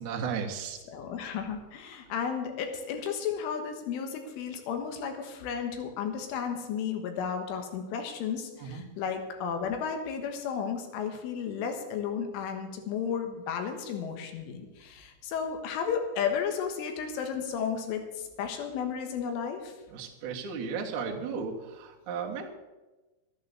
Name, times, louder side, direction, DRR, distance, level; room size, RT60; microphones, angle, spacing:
voice 1, 0.0-0.8 8.6-8.8 19.9-22.5, right 6 dB, 60° right, 0 dB, 2.0 m, -35 dB
voice 2, 0.9-19.8, left 7 dB, 85° left, 5 dB, 3.9 m, -33 dB
12.0 x 10.5 x 6.9 m, 1.1 s
omnidirectional pair, 5.6 m